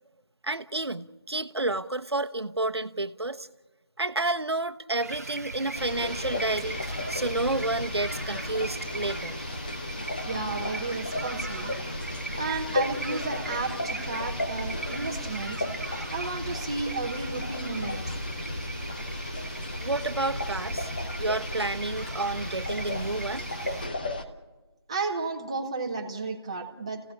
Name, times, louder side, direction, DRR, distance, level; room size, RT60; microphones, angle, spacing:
voice 1, 0.4-3.5 4.0-6.8 7.1-9.4 19.8-20.9 21.2-23.5, right 2 dB, 75° right, 10 dB, 1.1 m, -30 dB
sound 1, 5.0-23.9, right 3 dB, 35° right, 1.0 m, -40 dB
sound 2, 5.8-24.2, left 2 dB, 20° left, 1.0 m, -34 dB
voice 2, 10.2-11.8 12.3-15.7 16.1-18.0 24.9-27.1, right 3 dB, 10° right, 1 dB, 1.1 m, -33 dB
29.0 x 16.5 x 8.6 m, 1.2 s
figure-of-eight pair, 170°, 14 cm